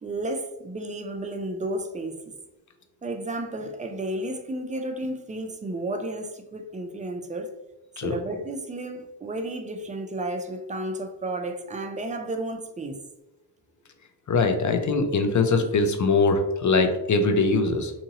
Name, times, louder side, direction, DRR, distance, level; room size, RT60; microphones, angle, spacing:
voice 1, 0.0-2.3 3.0-7.5 8.0-13.0, right 1 dB, 20° right, 0.3 m, -32 dB
voice 2, 14.3-17.9, left 3 dB, 40° left, 0.5 m, -22 dB
2.7 x 2.6 x 2.7 m
cardioid pair, 55°, 46 cm